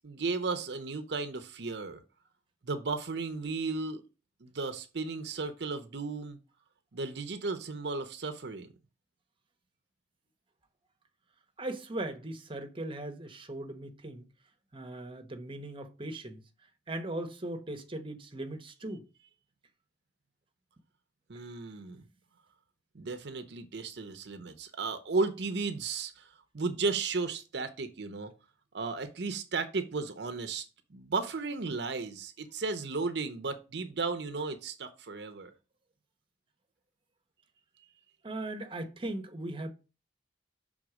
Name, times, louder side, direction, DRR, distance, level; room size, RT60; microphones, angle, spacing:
voice 1, 0.0-2.0 2.6-4.0 4.4-6.4 6.9-8.7 21.3-22.0 22.9-28.3 28.7-30.6 30.9-35.5, right 4 dB, 70° right, 0.7 m, -34 dB
voice 2, 11.6-14.3 14.7-16.4 16.9-19.0 38.2-39.7, right 1 dB, 30° right, 1.0 m, -38 dB
6.2 x 3.7 x 4.9 m
head